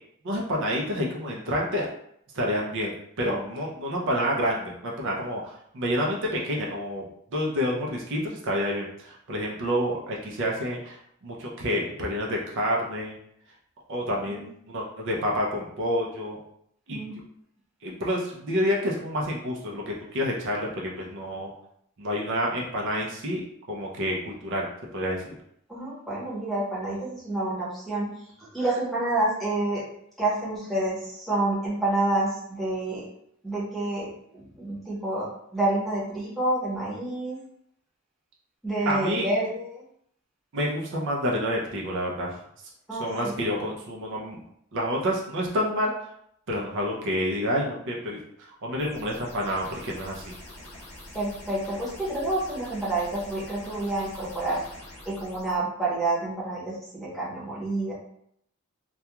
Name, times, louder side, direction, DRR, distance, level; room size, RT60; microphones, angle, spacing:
voice 1, 0.2-1.8 2.3-7.0 7.3-11.0 11.2-13.2 13.9-14.4 14.7-16.4 16.9-17.0 17.8-21.5 22.0-23.4 23.7-24.7 24.9-25.4 38.9-39.3 40.5-42.4 43.0-44.4 44.7-45.9 46.5-50.4, equal, 60° right, -2 dB, 0.5 m, -28 dB
voice 2, 25.7-28.1 28.4-29.8 30.2-33.1 33.4-37.4 38.6-39.8 42.9-43.4 51.1-54.6 55.1-57.9, right 2 dB, ahead, -7 dB, 0.8 m, -28 dB
sound 1, 48.8-55.6, left 1 dB, 30° left, 0.7 m, -45 dB
2.3 x 2.2 x 2.9 m, 0.70 s
head